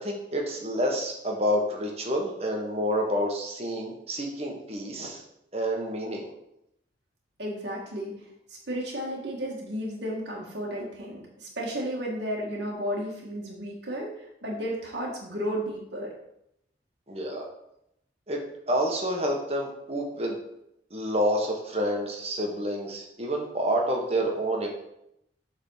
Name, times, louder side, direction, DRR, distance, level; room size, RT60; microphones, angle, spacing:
voice 1, 0.0-5.2 5.5-6.3 17.1-17.4 18.3-18.4 18.7-20.4 20.9-24.7, equal, 35° right, 0 dB, 1.4 m, -28 dB
voice 2, 7.4-8.1 8.5-16.1, equal, 80° right, -3 dB, 1.8 m, -33 dB
7.4 x 4.0 x 5.6 m, 0.79 s
head